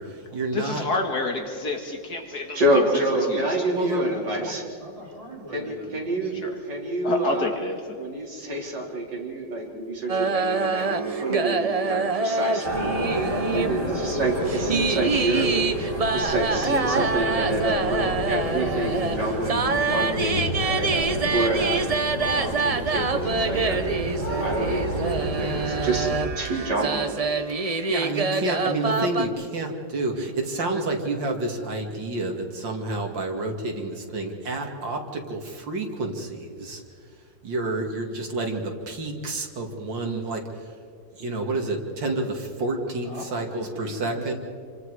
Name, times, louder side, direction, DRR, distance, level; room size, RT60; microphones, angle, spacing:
voice 1, 0.0-0.8 3.7-4.0 4.4-4.5 27.6-36.8 37.4-40.4 41.2-44.3, right 2 dB, 85° right, 2 dB, 3.1 m, -29 dB
voice 2, 0.5-3.0 3.3-3.7 6.3-6.6 7.0-8.0, left 3 dB, 60° left, 3 dB, 2.4 m, -29 dB
voice 3, 2.5-4.6 5.5-7.5 8.0-13.0 13.5-22.0 22.4-23.8 24.4-27.2, right 2 dB, 70° right, -2 dB, 4.6 m, -27 dB
voice 4, 3.8-6.7 43.0-44.3, right 1 dB, 20° right, -3 dB, 4.4 m, -42 dB
sound 1, 10.1-29.3, right 4 dB, 45° right, 0.4 m, -26 dB
sound 2, 12.6-26.2, left 1 dB, 40° left, 7.0 m, -30 dB
28.0 x 24.5 x 4.9 m, 2.3 s
omnidirectional pair, 2.0 m